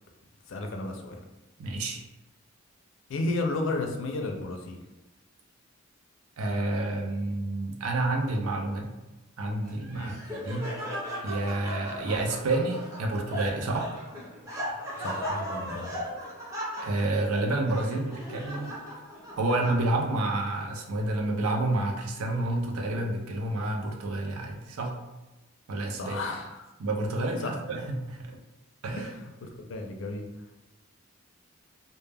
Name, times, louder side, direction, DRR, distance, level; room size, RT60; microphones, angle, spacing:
voice 1, 0.5-1.2 3.1-4.8 9.9-10.1 15.0-16.0 26.0-26.7 27.4-27.5 29.0-29.1 29.4-30.2, left 2 dB, 60° left, 3 dB, 0.4 m, -33 dB
voice 2, 1.6-2.0 6.4-8.9 9.4-10.7 11.2-13.9 16.8-18.7 19.4-24.9 25.7-26.2 26.8-28.4 28.8-29.1, right 2 dB, 85° right, 2 dB, 0.5 m, -29 dB
Laughter, 9.6-20.2, equal, 15° right, 0.5 m, -37 dB
2.1 x 2.0 x 3.3 m, 1.1 s
head